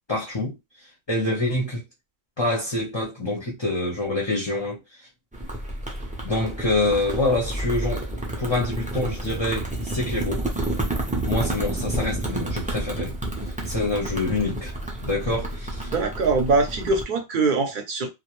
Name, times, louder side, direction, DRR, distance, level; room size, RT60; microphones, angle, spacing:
voice 1, 0.1-0.6 1.1-1.8 2.4-4.8 6.2-8.1 8.4-10.4 11.2-13.1 13.6-14.7 15.0-15.9, left 2 dB, 30° left, 0.6 m, -26 dB
sound 1, 5.3-17.0, right 1 dB, 10° right, 0.4 m, -30 dB
voice 2, 15.8-18.1, right 3 dB, 55° right, 0.7 m, -23 dB
2.4 x 2.0 x 2.9 m
omnidirectional pair, 1.1 m